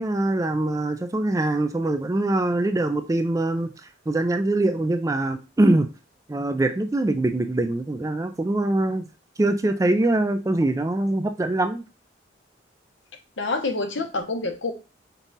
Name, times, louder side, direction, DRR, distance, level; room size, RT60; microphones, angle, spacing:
voice 1, 0.0-3.7 4.1-5.9 6.3-9.1 9.4-11.8, right 2 dB, 15° right, 8 dB, 0.3 m, -23 dB
voice 2, 13.4-14.7, left 3 dB, 75° left, 5 dB, 0.9 m, -27 dB
5.4 x 2.4 x 4.0 m, 0.30 s
head